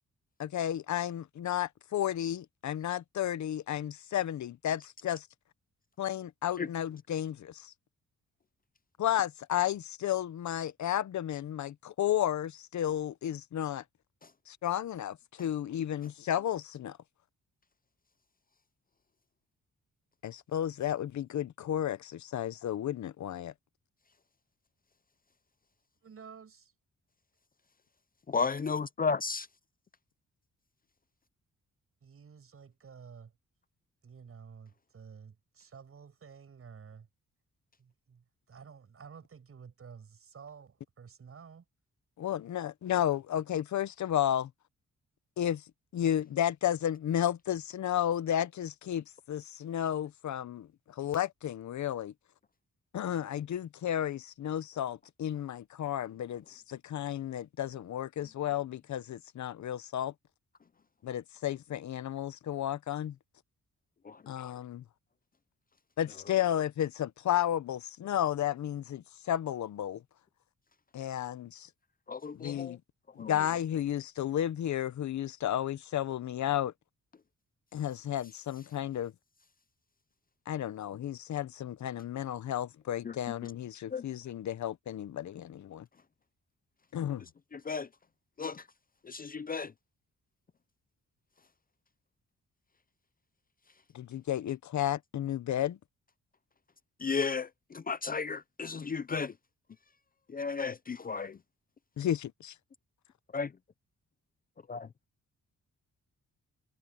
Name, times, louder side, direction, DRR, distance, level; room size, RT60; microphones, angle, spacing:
voice 1, 0.4-5.3 6.0-7.7 9.0-13.8 14.5-17.0 20.2-23.5 42.2-44.5 45.4-45.6 45.9-52.1 52.9-60.1 61.0-63.2 64.3-64.8 66.0-70.0 70.9-71.7 72.3-72.8 73.2-76.7 77.7-79.1 80.5-85.9 86.9-87.2 93.9-95.8 102.0-102.5, left 11 dB, 65° left, 0.8 m, -33 dB
voice 2, 26.0-26.7 32.0-33.3 34.0-37.1 37.8-41.6, right 6 dB, 45° right, 7.6 m, -51 dB
voice 3, 28.3-29.4 64.0-64.2 72.1-72.8 73.2-73.3 83.0-83.2 83.9-84.0 87.5-87.9 88.4-88.6 89.0-89.7 97.0-99.3 100.3-101.4 103.3-103.5 104.7-104.8, left 5 dB, 30° left, 0.5 m, -33 dB
wide cardioid pair, 155°, 31 cm